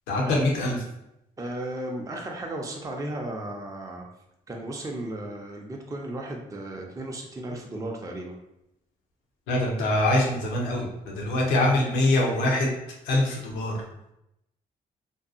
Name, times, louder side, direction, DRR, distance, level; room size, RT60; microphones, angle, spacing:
voice 1, 0.1-0.8 9.5-12.7 13.0-13.7, left 1 dB, 85° left, -1 dB, 0.7 m, -24 dB
voice 2, 1.4-4.1 4.5-8.3, right 1 dB, 20° right, 0 dB, 0.5 m, -35 dB
2.7 x 2.3 x 2.5 m, 0.84 s
supercardioid pair, 55°, 18 cm